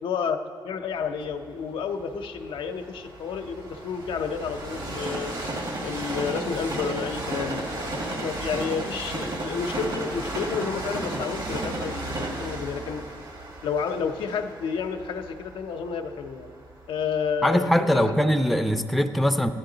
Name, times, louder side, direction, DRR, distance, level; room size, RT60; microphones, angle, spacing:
voice 1, 0.0-5.3 5.8-13.0 13.6-16.5 16.9-18.2, left 6 dB, 90° left, 5 dB, 0.6 m, -30 dB
Train, 1.2-17.2 17.8-17.9, right 2 dB, 60° right, 1.9 m, -34 dB
voice 2, 17.4-19.5, equal, ahead, 7 dB, 0.5 m, -22 dB
14.0 x 10.0 x 3.9 m, 2.4 s
cardioid pair, 90°, 9 cm